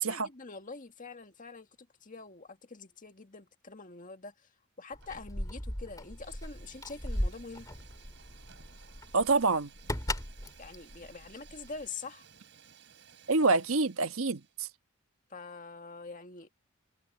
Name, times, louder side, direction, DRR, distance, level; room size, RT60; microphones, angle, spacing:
voice 1, 0.0-1.7 2.0-4.3 4.8-7.7 10.6-12.2 15.3-16.5, left 4 dB, 40° left, 1.9 m, -45 dB
Keys jangling, 4.9-11.9, left 1 dB, 15° left, 2.5 m, -38 dB
Fire, 5.0-5.5 5.8-14.6, right 7 dB, 60° right, 6.0 m, -58 dB
voice 2, 9.1-9.7 13.3-14.7, right 3 dB, 80° right, 1.3 m, -26 dB
head